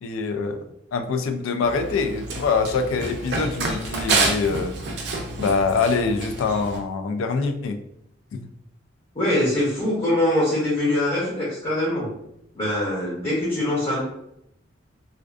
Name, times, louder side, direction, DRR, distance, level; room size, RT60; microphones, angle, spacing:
voice 1, 0.0-4.8 5.4-7.8 8.3-8.5, left 4 dB, 90° left, 7 dB, 0.3 m, -24 dB
Run, 1.6-6.8, right 3 dB, 60° right, 0.4 m, -28 dB
voice 2, 9.1-12.1 12.5-14.0, left 1 dB, 30° left, -7 dB, 0.7 m, -23 dB
2.4 x 2.3 x 2.3 m, 0.78 s
head